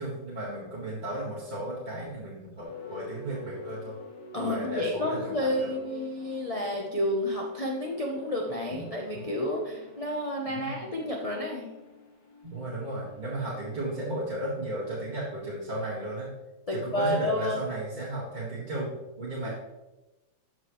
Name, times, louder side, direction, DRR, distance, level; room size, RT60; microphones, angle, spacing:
voice 1, 0.0-4.0 4.4-5.7 8.7-8.8 9.1-9.2 10.5-10.7 12.4-16.3 16.7-19.5, right 1 dB, 25° right, -8 dB, 1.9 m, -34 dB
sound 1, 2.6-16.0, left 2 dB, 70° left, 2.3 m, -47 dB
voice 2, 4.3-11.7 16.7-17.6, left 1 dB, 35° left, -1 dB, 0.5 m, -30 dB
13.0 x 6.2 x 3.2 m, 1.0 s
omnidirectional pair, 2.2 m